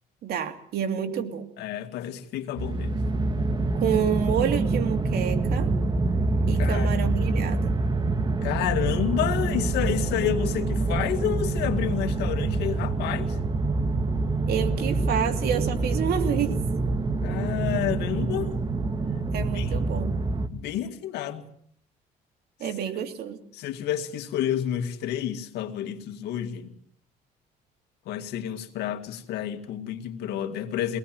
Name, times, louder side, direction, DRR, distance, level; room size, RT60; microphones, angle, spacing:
voice 1, 0.2-1.5 3.8-5.7 6.5-7.7 14.5-16.5 19.3-20.2 22.6-23.4, right 9 dB, 70° right, 2.6 m, -29 dB
voice 2, 1.6-3.0 6.6-6.9 8.4-13.4 17.2-18.5 19.4-19.7 20.5-21.4 23.5-26.7 28.1-31.0, left 10 dB, 80° left, 2.1 m, -30 dB
sound 1, 2.6-20.5, right 3 dB, 25° right, 1.5 m, -26 dB
23.5 x 18.5 x 7.7 m
cardioid pair, 110°, 17 cm